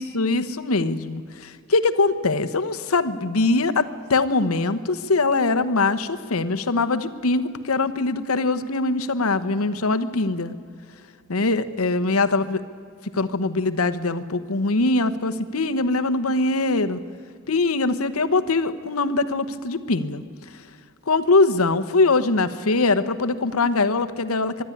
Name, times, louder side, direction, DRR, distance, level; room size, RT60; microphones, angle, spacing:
voice 1, 0.0-10.5 11.3-12.6 13.1-17.0 17.5-20.2 21.1-24.6, left 3 dB, 90° left, 10 dB, 1.0 m, -22 dB
24.0 x 11.5 x 9.8 m, 2.3 s
head